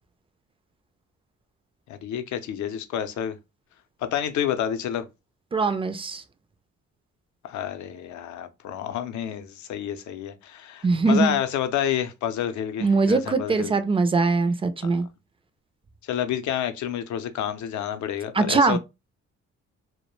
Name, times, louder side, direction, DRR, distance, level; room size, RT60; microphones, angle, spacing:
voice 1, 1.9-3.4 4.0-5.1 7.4-13.7 14.8-14.9 16.0-18.8, left 10 dB, 75° left, 0.5 m, -29 dB
voice 2, 5.5-6.2 10.8-11.4 12.8-15.1 18.3-18.8, right 3 dB, 20° right, 0.3 m, -22 dB
2.2 x 2.1 x 3.0 m
cardioid pair, 90°, 30 cm